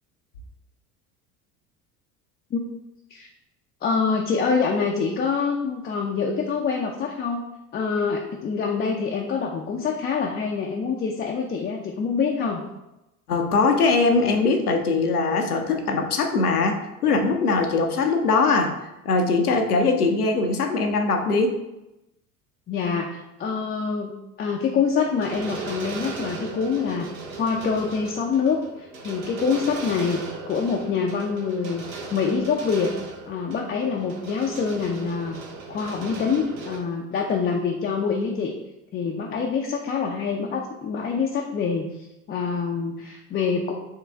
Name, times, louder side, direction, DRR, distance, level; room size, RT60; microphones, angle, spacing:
voice 1, 3.8-7.4 7.7-12.6 22.7-24.1 24.4-27.1 27.4-32.9 33.3-35.4 35.7-38.5 38.9-43.7, left 5 dB, 25° left, 1 dB, 0.5 m, -25 dB
voice 2, 13.3-21.6, left 3 dB, 85° left, 4 dB, 0.7 m, -21 dB
sound 1, 24.9-36.8, right 3 dB, 70° right, 1.1 m, -37 dB
4.5 x 3.2 x 3.5 m, 0.94 s
figure-of-eight pair, 65°, 44 cm